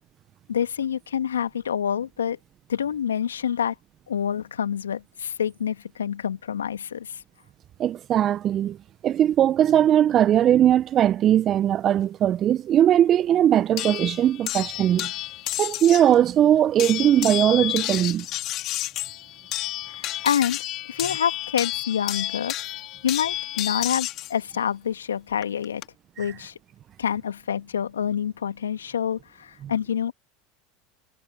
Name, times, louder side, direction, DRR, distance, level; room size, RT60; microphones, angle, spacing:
voice 1, 0.5-2.4 2.7-3.7 4.1-7.2 19.9-20.6 20.9-22.5 23.0-25.8 26.2-26.5 27.0-30.1, left 8 dB, 85° left, 2.3 m, -27 dB
voice 2, 7.8-8.8 9.0-15.1 15.6-18.2 29.6-29.7, right 11 dB, 40° right, 1.3 m, -19 dB
sound 1, 13.8-16.1 16.8-24.3 25.4-25.8, left 16 dB, 50° left, 4.0 m, -31 dB
hypercardioid pair, 80°, 0 cm